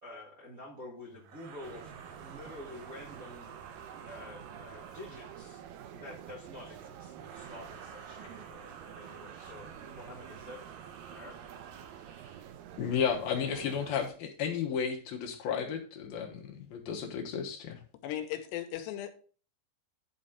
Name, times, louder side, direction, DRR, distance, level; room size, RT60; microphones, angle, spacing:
voice 1, 0.0-3.5 4.0-5.6 5.9-10.6 11.1-11.4, left 1 dB, 40° right, -5 dB, 1.2 m, -48 dB
sound 1, 1.2-5.8 7.1-12.6, right 6 dB, 70° right, 1.8 m, -51 dB
sound 2, 1.6-14.1, right 10 dB, 85° right, 1.9 m, -49 dB
voice 2, 12.8-17.8, left 7 dB, 70° left, 2 dB, 2.7 m, -33 dB
voice 3, 18.0-19.1, left 12 dB, 90° left, 8 dB, 3.1 m, -36 dB
11.0 x 4.2 x 5.1 m, 0.40 s
omnidirectional pair, 4.9 m